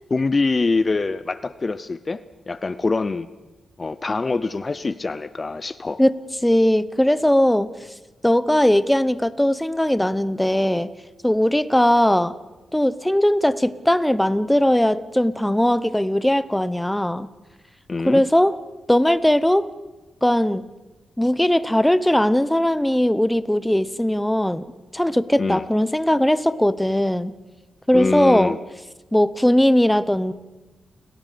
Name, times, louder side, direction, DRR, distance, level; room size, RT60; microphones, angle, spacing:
voice 1, 0.1-3.3 3.8-6.0 17.9-18.2 25.4-25.6 27.9-28.6, left 3 dB, 30° left, 14 dB, 0.6 m, -24 dB
voice 2, 6.4-7.7 8.2-10.9 11.2-12.3 12.7-17.3 18.0-18.6 18.9-19.7 20.2-20.6 21.2-24.6 24.9-27.3 27.9-28.6 29.1-30.3, left 1 dB, 5° left, 14 dB, 0.8 m, -19 dB
29.5 x 18.0 x 5.1 m, 1.1 s
cardioid pair, 95°, 0 cm